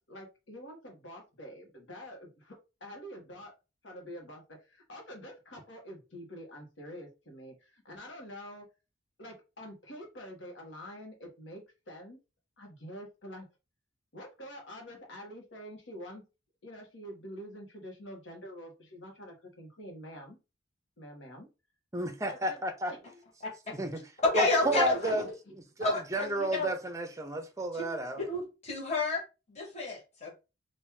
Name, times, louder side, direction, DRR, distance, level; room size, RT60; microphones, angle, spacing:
voice 1, 0.0-3.5 3.8-8.7 9.2-12.2 12.6-13.5 14.1-16.2 16.6-20.4 21.0-21.5 22.3-22.6 22.9-23.2 24.7-25.5, equal, 85° left, 1.2 m, -46 dB
voice 2, 21.9-22.9 23.7-24.0 24.3-25.2 25.8-28.2, right 1 dB, 15° right, 0.5 m, -32 dB
voice 3, 23.4-23.7 24.2-25.3 25.8-26.7 27.7-29.2 29.5-30.3, left 2 dB, 35° left, 1.5 m, -30 dB
3.0 x 2.6 x 3.5 m
head